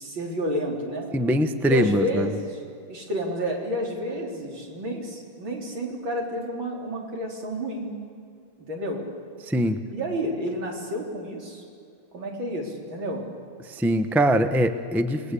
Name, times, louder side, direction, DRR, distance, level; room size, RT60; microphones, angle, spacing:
voice 1, 0.0-1.1 1.7-2.6 2.9-7.9 8.7-9.0 9.9-11.6 12.1-13.2, equal, 80° right, 0 dB, 4.5 m, -30 dB
voice 2, 1.1-2.3 9.5-9.8 13.8-15.2, equal, ahead, 9 dB, 0.4 m, -22 dB
28.0 x 20.0 x 8.5 m, 2.3 s
omnidirectional pair, 2.1 m